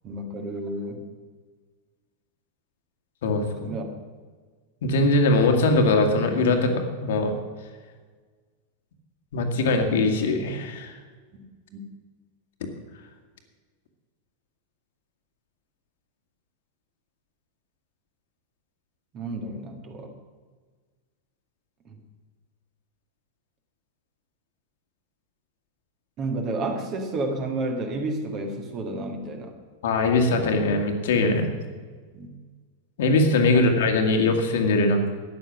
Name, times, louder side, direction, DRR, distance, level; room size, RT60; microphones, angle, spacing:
voice 1, 0.0-1.0 3.6-3.9 11.3-11.4 11.7-11.8 19.1-20.1 21.8-22.0 26.2-29.6 32.1-32.3 33.5-33.7, right 2 dB, 35° right, 4 dB, 2.1 m, -31 dB
voice 2, 3.2-3.7 4.8-7.4 9.3-10.9 29.8-31.5 33.0-35.1, left 2 dB, 55° left, 4 dB, 1.8 m, -21 dB
13.5 x 9.7 x 6.2 m, 1.5 s
figure-of-eight pair, 90°, 0 cm